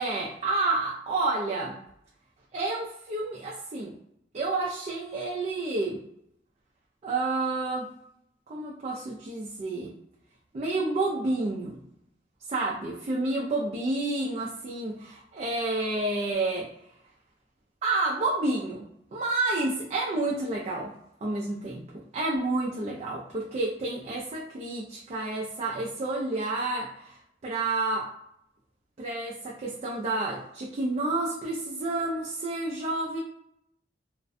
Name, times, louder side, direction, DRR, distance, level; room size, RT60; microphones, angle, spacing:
voice 1, 0.0-1.8 2.5-3.9 4.3-6.0 7.0-7.9 8.5-9.9 10.5-11.8 12.5-16.7 17.8-20.9 21.2-21.8 22.1-28.1 29.0-33.2, right 2 dB, 40° right, -3 dB, 0.3 m, -30 dB
2.4 x 2.1 x 2.5 m, 0.76 s
head